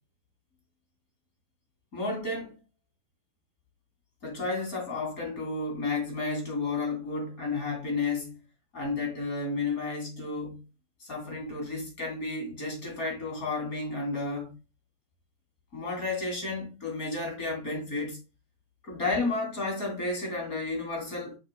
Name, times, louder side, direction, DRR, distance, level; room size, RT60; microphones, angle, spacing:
voice 1, 1.9-2.6 4.2-8.4 8.7-10.6 11.0-14.5 15.7-18.2 18.8-21.4, left 3 dB, 25° left, 3.1 m, -32 dB
8.5 x 5.8 x 2.2 m
omnidirectional pair, 4.0 m